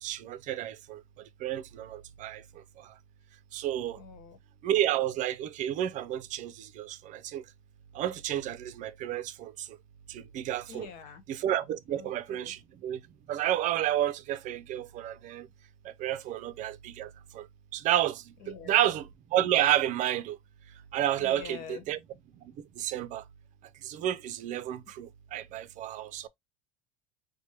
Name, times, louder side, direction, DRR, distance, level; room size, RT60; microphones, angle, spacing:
voice 1, 0.0-1.0 1.4-2.4 2.8-2.9 3.5-4.0 4.6-7.4 7.9-9.7 10.1-10.9 11.3-13.0 13.3-15.5 15.8-17.5 17.7-20.4 20.9-22.0 22.6-23.2 23.8-26.3, right 12 dB, 45° right, 0.5 m, -31 dB
voice 2, 4.0-4.4 10.7-11.2 11.9-12.5 18.4-18.8 21.2-21.8, left 8 dB, 55° left, 1.2 m, -45 dB
4.5 x 2.2 x 2.9 m
supercardioid pair, 130°, 18 cm